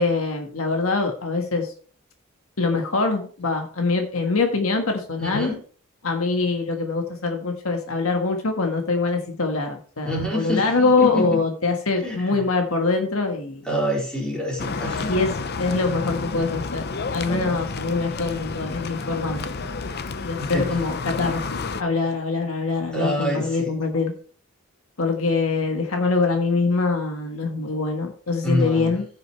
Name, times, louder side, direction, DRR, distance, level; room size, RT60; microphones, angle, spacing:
voice 1, 0.0-1.7 2.6-5.5 6.0-13.7 15.1-15.3 15.6-16.8 17.1-19.6 20.2-24.1 25.0-29.1, left 3 dB, 70° left, 4 dB, 1.5 m, -24 dB
voice 2, 5.2-5.6 10.0-11.4 12.0-12.3 13.6-15.1 17.3-17.6 20.4-20.7 22.9-23.7 28.4-28.9, equal, 5° left, -4 dB, 4.4 m, -26 dB
sound 1, 14.6-21.8, left 4 dB, 50° left, 0.7 m, -30 dB
15.0 x 6.8 x 3.2 m, 0.43 s
head